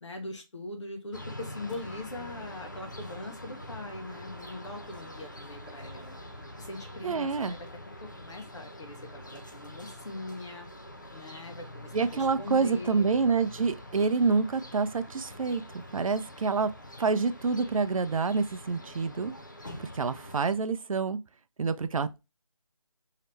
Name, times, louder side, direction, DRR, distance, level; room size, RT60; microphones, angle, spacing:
voice 1, 0.0-6.2 6.6-7.7 8.0-10.7 11.1-13.1, left 2 dB, 55° left, 0.9 m, -41 dB
sound 1, 1.1-20.5, left 1 dB, 35° left, 0.4 m, -45 dB
voice 2, 7.0-7.6 11.9-16.7 17.0-19.3 19.9-21.2 21.6-22.2, right 4 dB, 75° right, 0.4 m, -27 dB
3.2 x 2.8 x 3.0 m
figure-of-eight pair, 175°, 18 cm